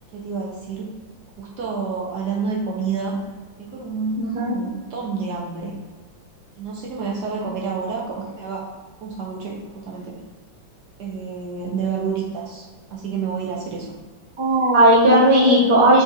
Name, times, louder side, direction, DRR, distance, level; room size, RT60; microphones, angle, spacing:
voice 1, 0.1-0.9 1.4-3.2 3.6-4.2 4.5-5.7 6.6-8.7 9.0-10.2 11.0-13.9, right 5 dB, 70° right, -3 dB, 1.1 m, -29 dB
voice 2, 4.2-4.5 14.4-16.0, right 1 dB, 25° right, -6 dB, 0.7 m, -15 dB
4.9 x 4.0 x 2.6 m, 1.4 s
omnidirectional pair, 2.1 m